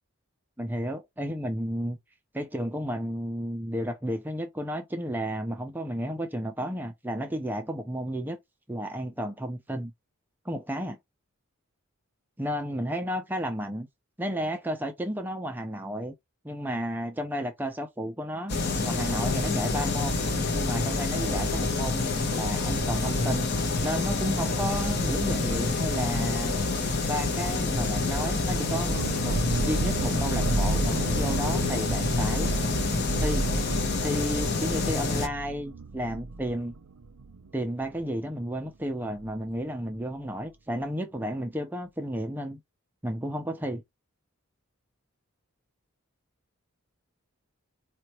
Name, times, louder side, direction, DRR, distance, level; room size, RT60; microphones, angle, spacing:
voice 1, 0.6-2.0 2.3-8.4 8.7-9.9 10.5-11.0 12.4-13.9 14.2-16.1 16.4-18.6 18.8-20.2 20.5-23.5 23.8-26.5 27.1-29.4 29.6-32.5 33.2-33.5 34.0-36.7 37.5-42.6 43.0-43.8, equal, 10° right, 0.4 m, -32 dB
sound 1, 18.5-35.3, left 3 dB, 45° left, 0.6 m, -27 dB
sound 2, 28.9-38.3 38.6-38.7 39.0-39.3, right 3 dB, 80° right, 0.6 m, -33 dB
4.2 x 2.2 x 2.9 m
head